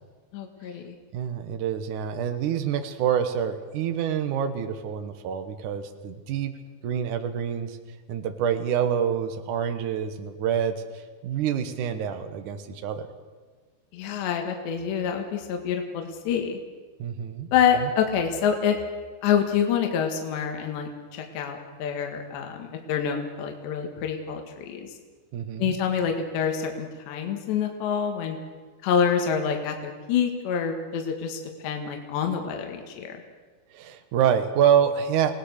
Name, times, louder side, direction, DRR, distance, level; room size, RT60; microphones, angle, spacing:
voice 1, 0.3-1.0 13.9-16.6 17.5-18.8 19.2-24.9 25.6-28.4 28.8-33.2, left 7 dB, 65° left, 3 dB, 3.8 m, -27 dB
voice 2, 1.1-6.5 6.8-7.8 8.1-13.1 17.0-17.5 25.3-25.8 33.7-35.3, right 8 dB, 90° right, 7 dB, 1.7 m, -26 dB
28.5 x 19.0 x 6.7 m, 1.4 s
omnidirectional pair, 5.7 m